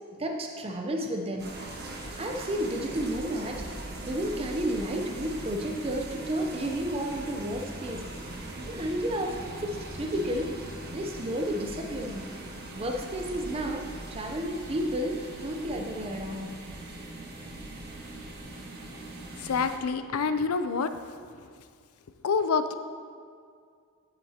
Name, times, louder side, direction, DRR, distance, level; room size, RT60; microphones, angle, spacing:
voice 1, 0.2-1.6 2.2-3.7 4.1-8.0 8.6-10.6 10.9-12.3 12.7-16.6, equal, 25° right, 2 dB, 0.6 m, -32 dB
sound 1, 1.4-19.8, right 2 dB, 45° right, 1.1 m, -40 dB
voice 2, 19.4-20.9 22.2-22.7, left 5 dB, 85° left, 10 dB, 0.5 m, -27 dB
10.0 x 8.2 x 2.9 m, 2.2 s
head